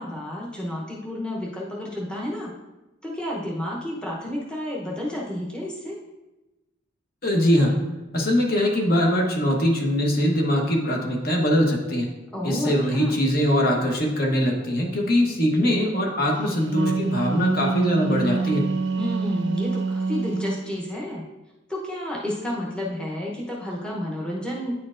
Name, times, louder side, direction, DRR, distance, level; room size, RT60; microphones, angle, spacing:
voice 1, 0.0-2.5 3.0-6.0 12.3-13.2 19.0-21.2 21.7-24.7, left 1 dB, 5° left, -5 dB, 0.8 m, -31 dB
voice 2, 7.2-7.8 8.1-12.1 12.4-18.6, equal, 50° left, 0 dB, 1.0 m, -22 dB
Wind instrument woodwind instrument, 16.5-20.7, right 4 dB, 70° right, 0.5 m, -26 dB
9.5 x 4.3 x 2.5 m, 1.0 s
head